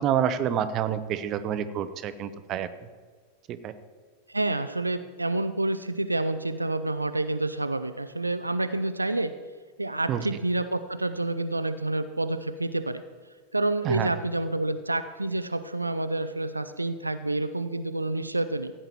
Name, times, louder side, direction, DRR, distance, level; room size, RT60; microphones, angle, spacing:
voice 1, 0.0-2.7 3.5-3.7 10.1-10.3 13.8-14.1, right 9 dB, 35° right, 12 dB, 0.7 m, -28 dB
voice 2, 4.3-9.3 9.8-13.0 13.5-18.7, right 2 dB, 85° right, 10 dB, 0.5 m, -28 dB
15.5 x 8.9 x 4.4 m, 1.5 s
figure-of-eight pair, 90°, 0 cm